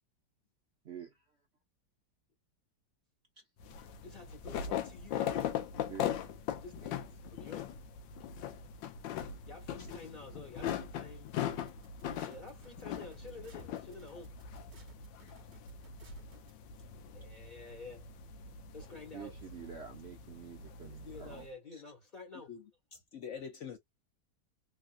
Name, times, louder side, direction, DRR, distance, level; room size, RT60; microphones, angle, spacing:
voice 1, 0.8-1.4 3.4-3.5 5.9-6.2 19.1-21.8, right 7 dB, 65° right, 0.6 m, -48 dB
sound 1, 3.6-21.5, left 9 dB, 90° left, 1.3 m, -40 dB
voice 2, 4.0-5.6 6.6-7.7 9.5-11.4 12.2-14.3 17.1-18.1 18.7-19.3 20.9-22.5, left 3 dB, 30° left, 1.0 m, -50 dB
sound 2, 11.5-16.5, right 4 dB, 40° right, 1.4 m, -61 dB
voice 3, 22.9-23.8, left 7 dB, 70° left, 0.7 m, -44 dB
3.5 x 2.4 x 2.5 m
omnidirectional pair, 1.9 m